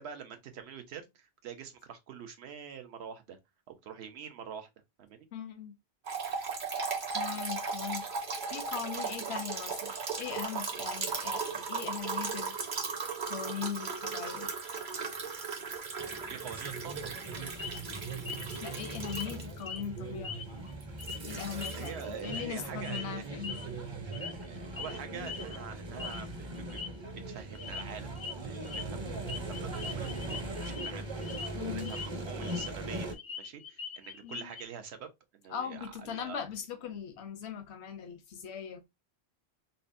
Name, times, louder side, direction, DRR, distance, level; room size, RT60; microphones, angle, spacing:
voice 1, 0.0-3.4 3.7-4.7 5.0-5.3 12.0-12.1 16.3-17.0 21.7-23.2 24.2-26.8 27.3-28.1 28.4-33.1 33.4-36.4, right 7 dB, 80° right, 1.0 m, -46 dB
voice 2, 5.3-5.8 7.1-8.1 8.4-12.6 13.3-14.5 18.6-20.4 21.3-23.6 31.6-31.9 34.2-34.5 35.5-38.9, left 7 dB, 85° left, 1.0 m, -40 dB
sound 1, 6.0-19.8 20.8-22.2, right 4 dB, 50° right, 0.9 m, -37 dB
sound 2, 16.0-33.2, right 2 dB, 30° right, 0.6 m, -40 dB
sound 3, 17.6-17.8 18.3-18.6 19.0-19.3 19.6-19.8 20.2-20.7 21.0-21.2 21.6-22.5 22.8-23.0 23.4-23.7 24.1-24.5 24.8-25.0 25.3-25.6 26.0-26.2 26.6-26.9 27.5-27.8 28.2-28.3 28.6-28.8 29.3-30.9 31.2-31.5 31.8-32.7 33.0-34.6, left 6 dB, 50° left, 0.4 m, -41 dB
5.3 x 2.1 x 2.5 m
omnidirectional pair, 1.1 m